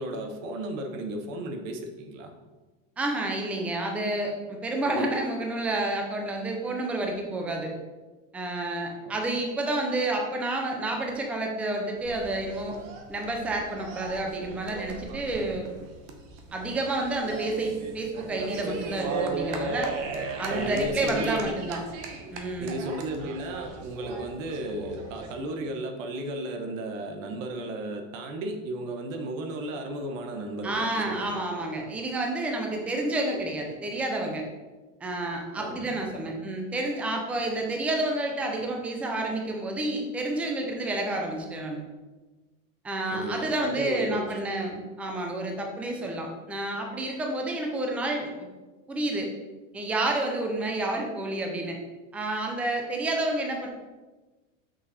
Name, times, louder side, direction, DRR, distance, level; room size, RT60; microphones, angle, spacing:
voice 1, 0.0-2.3 9.0-9.2 20.5-21.5 22.6-31.4 31.8-31.9 33.3-33.5 35.6-36.4 43.1-44.4, right 1 dB, 85° right, 4 dB, 1.2 m, -34 dB
voice 2, 3.0-7.7 8.3-12.8 13.1-15.7 16.5-19.9 20.4-21.8 22.3-22.7 30.6-34.4 35.0-41.8 42.8-48.5 48.9-49.3 49.7-51.8 52.1-53.7, right 2 dB, 5° right, 1 dB, 0.4 m, -29 dB
sound 1, 12.0-25.3, right 4 dB, 50° right, 1.1 m, -37 dB
6.1 x 5.5 x 4.1 m, 1.2 s
supercardioid pair, 165°, 38 cm